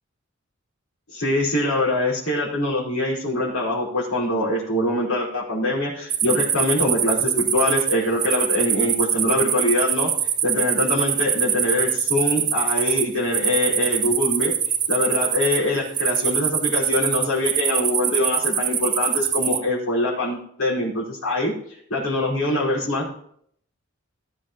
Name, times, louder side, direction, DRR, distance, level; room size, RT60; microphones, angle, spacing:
voice 1, 1.1-10.1 10.4-14.5 14.9-21.5 21.9-23.1, left 1 dB, 80° left, -8 dB, 5.4 m, -23 dB
sound 1, 6.1-19.6, right 8 dB, 20° right, 0.6 m, -23 dB
18.0 x 9.8 x 3.2 m, 0.67 s
head